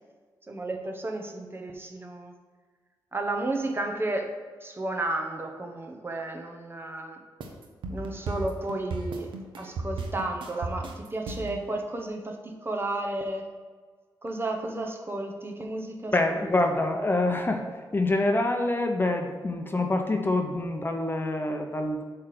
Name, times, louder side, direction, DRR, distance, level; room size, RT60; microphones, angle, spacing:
voice 1, 0.5-2.3 3.1-4.3 4.6-7.2 7.9-13.5 14.2-16.5, right 2 dB, 30° right, 3 dB, 1.0 m, -33 dB
sound 1, 7.4-11.6, right 3 dB, 85° right, 0.8 m, -35 dB
voice 2, 16.1-17.6 17.9-22.0, left 2 dB, 25° left, 4 dB, 0.8 m, -26 dB
7.2 x 3.4 x 5.9 m, 1.5 s
cardioid pair, 60°, 8 cm